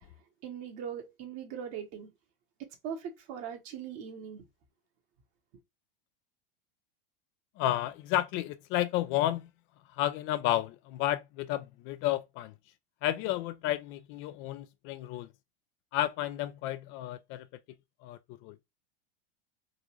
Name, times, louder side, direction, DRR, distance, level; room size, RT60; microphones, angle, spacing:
voice 1, 0.4-2.1 2.6-4.4, right 8 dB, 55° right, 1.3 m, -40 dB
voice 2, 7.6-9.5 10.0-12.5 13.0-15.3 15.9-17.5 18.0-18.6, left 14 dB, 45° left, 0.4 m, -31 dB
3.8 x 2.6 x 3.0 m
hypercardioid pair, 100°, 29 cm